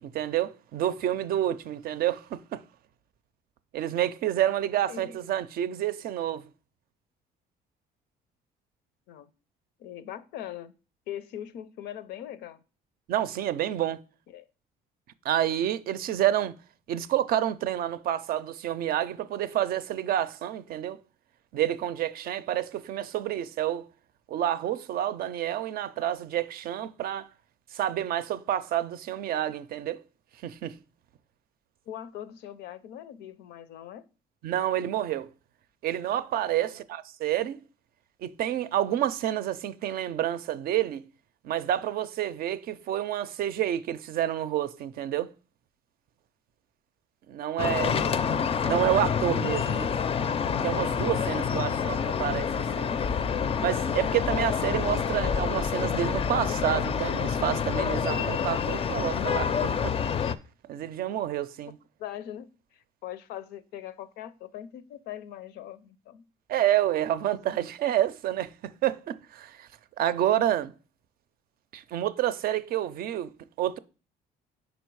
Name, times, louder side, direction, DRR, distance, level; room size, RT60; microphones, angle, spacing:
voice 1, 0.0-2.6 3.7-6.5 13.1-14.0 15.2-16.5 16.9-21.0 21.5-23.9 24.3-27.3 27.7-30.0 30.4-30.8 34.4-35.3 35.8-37.6 38.2-41.0 41.4-45.3 47.3-48.0 48.6-49.9 50.6-52.9 53.6-60.0 60.7-61.8 66.5-69.7 70.0-70.7 71.7-73.3 73.6-73.8, right 12 dB, 60° right, 0.5 m, -29 dB
voice 2, 9.8-10.7 11.1-12.6 14.3-14.5 31.9-34.0 36.6-36.8 51.5-52.0 62.0-66.2 67.5-67.6, left 11 dB, 85° left, 0.5 m, -41 dB
sound 1, 47.6-60.3, left 6 dB, 35° left, 0.4 m, -27 dB
5.1 x 4.3 x 4.6 m
cardioid pair, 110°, 17 cm